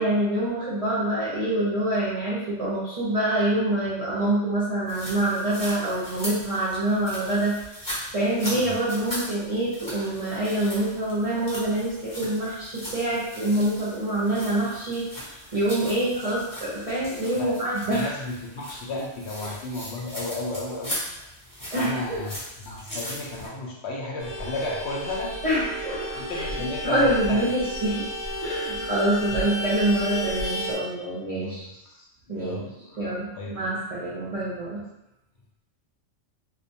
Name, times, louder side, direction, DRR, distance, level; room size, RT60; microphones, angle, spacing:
voice 1, 0.0-7.5 8.1-18.1 19.4-19.5 21.7-22.2 25.4-28.0 28.4-31.7 32.3-32.6 33.0-34.8, right 1 dB, 45° right, -8 dB, 0.5 m, -26 dB
sound 1, 4.9-23.5, equal, 20° left, 0.7 m, -39 dB
voice 2, 17.8-21.0 21.7-22.3 22.6-25.6 26.2-27.4 29.3-29.5 31.4-33.6, left 2 dB, 70° left, -3 dB, 0.8 m, -34 dB
Vehicle horn car horn honking, 24.2-30.7, equal, 90° left, 1.2 m, -32 dB
2.5 x 2.2 x 2.6 m, 0.88 s
omnidirectional pair, 1.3 m